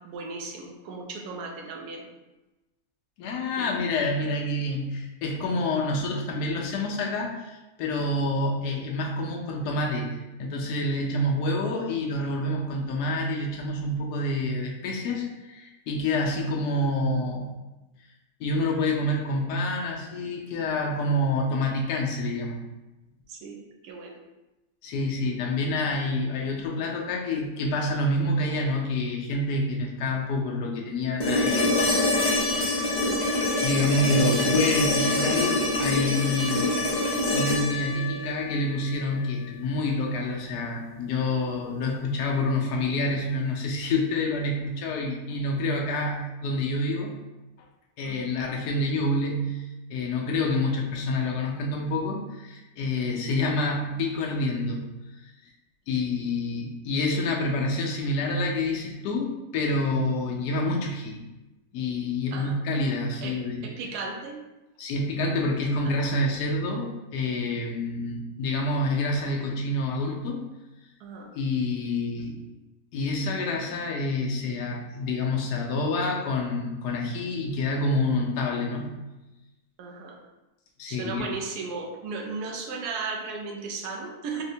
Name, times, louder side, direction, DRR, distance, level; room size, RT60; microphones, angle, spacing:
voice 1, 0.0-2.1 3.6-3.8 11.8-11.9 16.4-16.6 23.3-24.2 48.0-48.3 62.3-62.6 63.2-64.4 65.8-66.0 71.0-71.3 78.7-78.8 79.8-80.2 80.9-84.4, right 4 dB, 80° right, 2 dB, 1.1 m, -36 dB
voice 2, 3.2-17.6 18.4-22.6 24.8-32.0 32.7-32.9 33.6-36.8 37.3-47.1 48.0-49.6 49.9-54.8 55.9-61.2 61.7-63.7 64.8-70.4 71.3-72.4 72.9-78.9 80.8-81.2, left 2 dB, 85° left, 0 dB, 1.2 m, -27 dB
sound 1, 31.2-39.3 41.4-41.5, left 1 dB, 65° left, 0.4 m, -25 dB
4.3 x 2.1 x 2.7 m, 1.0 s
omnidirectional pair, 1.7 m